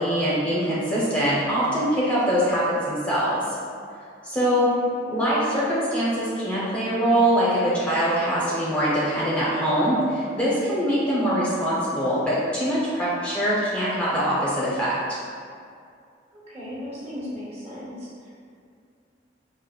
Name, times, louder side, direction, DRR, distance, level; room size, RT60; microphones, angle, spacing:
voice 1, 0.0-3.4 4.2-4.7 5.1-15.0, equal, 5° left, -9 dB, 0.5 m, -23 dB
voice 2, 4.4-5.2 16.3-18.3, left 1 dB, 35° right, -8 dB, 0.8 m, -37 dB
5.0 x 2.1 x 2.2 m, 2.3 s
head